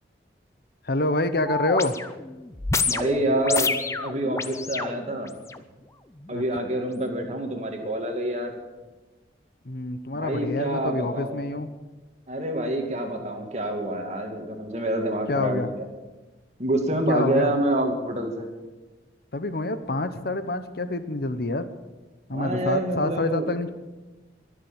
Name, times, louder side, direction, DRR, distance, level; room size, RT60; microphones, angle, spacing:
voice 1, 0.8-2.0 6.3-6.4 9.6-11.7 15.3-15.7 17.1-17.5 19.3-21.7 22.3-23.7, left 2 dB, 55° left, 11 dB, 0.9 m, -27 dB
sound 1, 1.5-5.6 6.2-6.4, left 4 dB, 15° left, 0.6 m, -29 dB
voice 2, 2.9-3.7 4.0-5.3 6.3-8.6 10.1-11.5 12.3-15.9 16.6-18.5 22.3-23.5, right 1 dB, 40° right, 2 dB, 2.4 m, -27 dB
22.5 x 7.5 x 7.3 m, 1.2 s
head